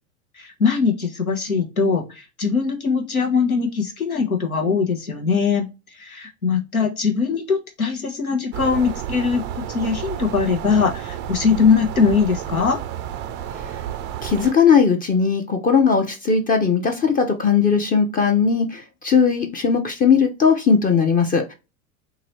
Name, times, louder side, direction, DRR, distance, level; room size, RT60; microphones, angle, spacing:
voice 1, 0.4-5.7 5.9-12.8, left 5 dB, 90° left, 3 dB, 1.2 m, -21 dB
sound 1, 8.5-14.5, right 10 dB, 30° right, 0.4 m, -31 dB
voice 2, 14.2-21.5, left 6 dB, 20° left, 5 dB, 0.6 m, -18 dB
3.9 x 2.7 x 3.0 m, 0.27 s
figure-of-eight pair, 85°, 41 cm